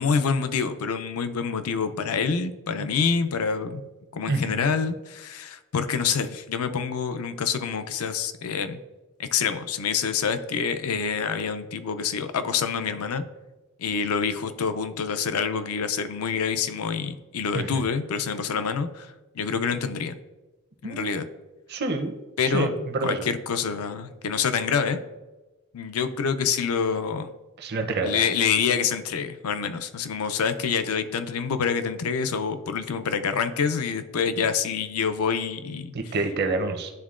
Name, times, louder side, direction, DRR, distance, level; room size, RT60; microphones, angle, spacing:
voice 1, 0.0-3.8 4.1-8.8 9.2-13.2 13.8-20.2 20.8-21.3 22.4-22.7 23.0-25.0 25.7-27.3 28.0-36.1, left 6 dB, 80° left, 10 dB, 0.5 m, -26 dB
voice 2, 4.3-4.6 17.5-17.7 20.8-21.2 21.7-22.1 22.5-23.2 27.6-28.2 35.9-36.9, right 3 dB, 50° right, 6 dB, 0.6 m, -27 dB
11.0 x 3.6 x 2.4 m, 1.1 s
head